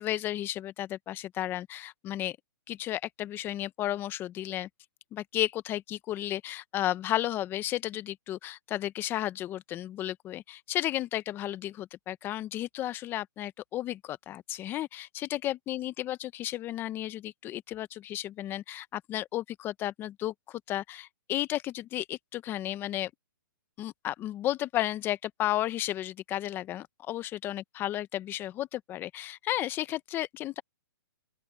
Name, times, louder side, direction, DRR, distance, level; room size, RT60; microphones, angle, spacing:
voice 1, 0.0-2.4 2.7-4.7 5.1-23.1 23.8-30.6, left 13 dB, 15° left, 0.7 m, -33 dB
open air
hypercardioid pair, 155°, 12 cm